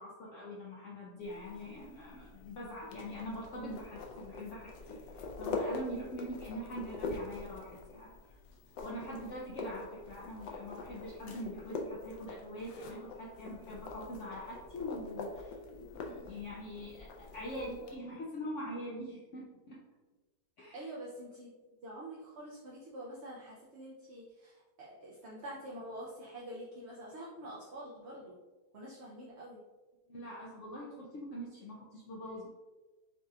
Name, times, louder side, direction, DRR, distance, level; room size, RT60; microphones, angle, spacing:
voice 1, 0.0-8.1 8.8-19.8 20.6-20.8 30.1-32.5, equal, 60° left, -4 dB, 0.9 m, -43 dB
sound 1, 1.2-18.0, left 3 dB, 90° left, 1.3 m, -44 dB
voice 2, 20.7-28.4 28.7-29.6, right 1 dB, 55° right, -5 dB, 0.8 m, -46 dB
6.5 x 3.0 x 2.4 m, 1.2 s
omnidirectional pair, 1.8 m